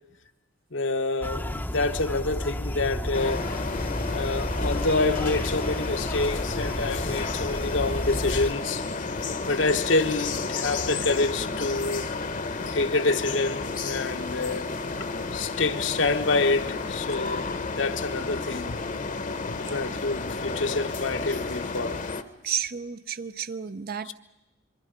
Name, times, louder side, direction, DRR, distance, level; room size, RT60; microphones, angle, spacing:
voice 1, 0.7-3.5 4.1-8.8 9.5-12.1 12.7-14.7 15.0-18.8 19.6-22.0 24.1-24.2, left 3 dB, 70° left, 1.1 m, -27 dB
sound 1, 1.2-8.5, left 1 dB, 10° left, 0.7 m, -32 dB
sound 2, 3.1-22.2, left 3 dB, 45° left, 0.9 m, -32 dB
voice 2, 22.4-24.1, right 8 dB, 50° right, 0.6 m, -32 dB
26.5 x 23.0 x 5.1 m
head